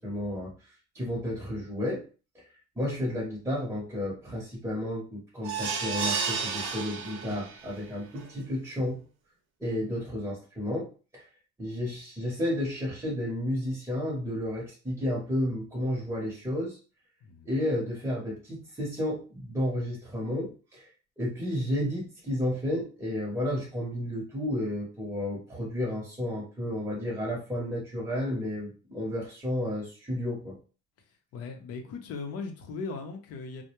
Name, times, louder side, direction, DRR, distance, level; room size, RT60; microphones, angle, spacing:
voice 1, 0.0-2.0 2.3-2.5 2.7-9.0 9.6-11.2 11.6-16.8 17.4-20.9 21.2-30.6, left 1 dB, 10° right, 0.8 m, -32 dB
sound 1, 5.4-7.7 8.2-8.3 8.6-8.7, right 5 dB, 75° right, 0.6 m, -32 dB
voice 2, 31.3-33.6, left 4 dB, 55° left, 0.7 m, -38 dB
2.2 x 2.1 x 2.9 m
cardioid pair, 145°, 30 cm